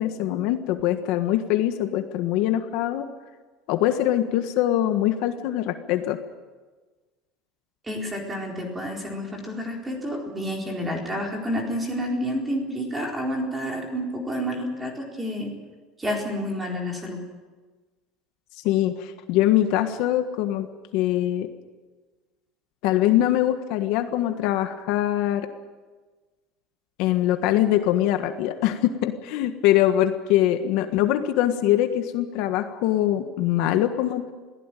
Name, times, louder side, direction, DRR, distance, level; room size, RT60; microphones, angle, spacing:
voice 1, 0.0-3.0 3.7-6.2 18.6-20.7 20.9-21.5 22.8-25.5 27.0-34.3, left 12 dB, 60° left, 7 dB, 1.5 m, -23 dB
voice 2, 7.8-15.5 16.0-17.2, equal, 10° right, 1 dB, 4.2 m, -29 dB
22.0 x 16.0 x 9.2 m, 1.3 s
cardioid pair, 170°, 0 cm